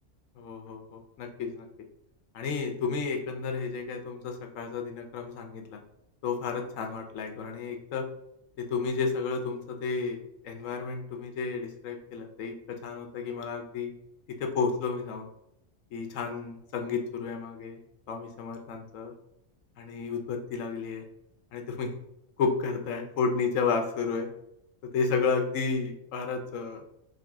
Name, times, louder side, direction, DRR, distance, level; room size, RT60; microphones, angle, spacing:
voice 1, 0.4-1.7 2.3-5.8 6.2-8.1 8.6-13.9 14.4-15.3 15.9-17.8 18.1-19.1 19.8-21.1 21.5-21.9 22.4-24.3 24.9-26.8, left 5 dB, 75° left, 4 dB, 1.1 m, -32 dB
4.0 x 3.2 x 3.4 m, 0.84 s
omnidirectional pair, 1.4 m